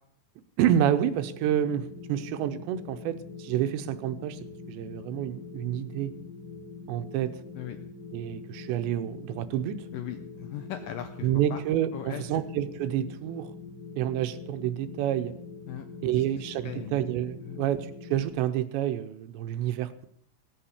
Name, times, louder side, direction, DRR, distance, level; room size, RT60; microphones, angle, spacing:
voice 1, 0.6-4.4 4.7-6.1 6.9-7.4 8.1-9.8 11.2-13.5 14.0-15.3 16.0-20.1, right 11 dB, 85° right, 11 dB, 3.0 m, -28 dB
sound 1, 0.9-18.3, left 4 dB, 40° left, 3.3 m, -44 dB
voice 2, 9.9-11.6 11.9-12.4 15.7-17.1 17.4-17.6, left 10 dB, 85° left, 8 dB, 2.0 m, -39 dB
16.5 x 8.8 x 7.1 m, 0.68 s
omnidirectional pair, 5.0 m